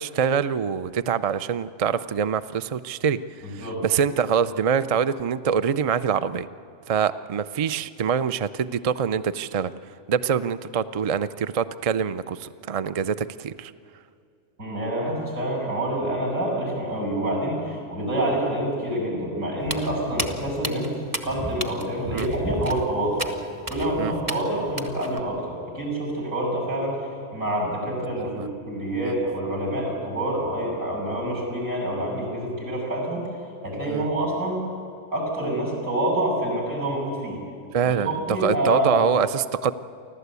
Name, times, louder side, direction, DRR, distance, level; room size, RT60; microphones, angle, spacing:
voice 1, 0.0-3.2 3.5-6.5 6.9-9.7 10.1-13.7 22.1-22.3 24.0-24.1 28.2-28.5 29.0-29.1 33.9-34.1 37.7-39.7, right 7 dB, 55° right, 13 dB, 0.4 m, -25 dB
voice 2, 3.4-3.8 14.6-23.3 23.7-27.0 27.3-33.2 33.6-34.6 35.1-37.4 37.8-39.1, right 1 dB, 80° right, -2 dB, 6.9 m, -27 dB
Walk footsteps, 19.6-25.2, equal, 20° right, 1.0 m, -33 dB
29.5 x 12.5 x 8.3 m, 2.4 s
omnidirectional pair, 1.3 m